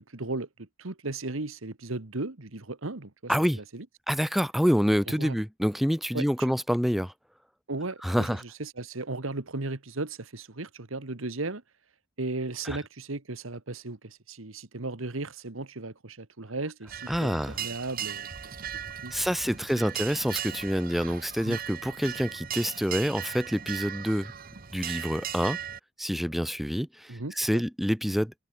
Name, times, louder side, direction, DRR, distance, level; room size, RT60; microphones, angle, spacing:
voice 1, 0.0-3.8 5.1-5.4 6.1-6.3 7.7-11.6 12.2-19.2 21.4-21.6 27.1-27.6, right 2 dB, 75° right, 1.6 m, -36 dB
voice 2, 3.3-3.6 4.1-7.1 8.0-8.4 12.6-12.8 17.1-17.6 19.1-24.3 24.7-25.6 26.0-28.3, equal, ahead, 2.3 m, -27 dB
sound 1, 16.9-25.8, right 9 dB, 45° right, 0.9 m, -38 dB
head